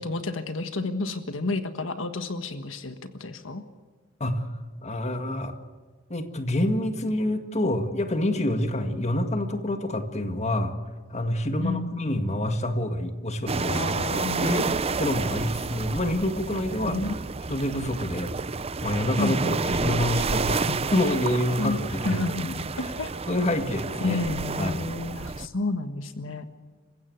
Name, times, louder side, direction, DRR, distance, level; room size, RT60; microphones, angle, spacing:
voice 1, 0.0-3.6 11.6-12.2 13.7-14.7 16.8-17.2 19.2-20.0 21.6-21.8 22.0-23.1 24.0-26.4, left 3 dB, 70° left, 9 dB, 1.5 m, -31 dB
voice 2, 4.8-5.5 6.1-10.7 11.1-17.0 17.5-18.3 18.8-22.9 23.3-24.2 24.6-24.9, left 1 dB, 35° left, 7 dB, 1.9 m, -27 dB
sound 1, 13.5-25.5, right 4 dB, 30° right, 0.6 m, -30 dB
28.0 x 16.0 x 8.0 m, 1.5 s
head